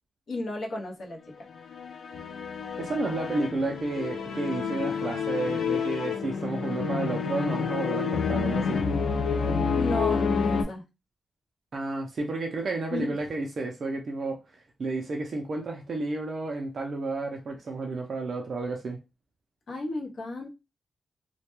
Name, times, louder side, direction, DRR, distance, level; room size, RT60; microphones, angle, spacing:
voice 1, 0.3-1.2 9.8-10.8 12.9-13.1 19.7-20.5, left 2 dB, 55° left, 0.7 m, -33 dB
sound 1, 1.6-10.6, left 5 dB, 90° left, 0.4 m, -29 dB
voice 2, 2.8-8.8 11.7-14.4 14.8-19.0, right 3 dB, 50° right, 0.4 m, -31 dB
2.1 x 2.1 x 2.9 m
wide cardioid pair, 170°, 0 cm